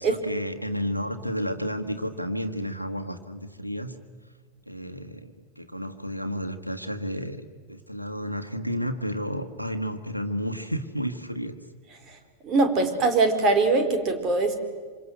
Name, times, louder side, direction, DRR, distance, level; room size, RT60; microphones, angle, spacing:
voice 1, 0.0-3.9 4.7-7.4 7.7-11.6, equal, 90° left, 5 dB, 1.5 m, -31 dB
voice 2, 12.4-14.6, right 3 dB, 35° right, 7 dB, 4.2 m, -22 dB
27.0 x 26.5 x 8.0 m, 1.5 s
figure-of-eight pair, 90°, 0 cm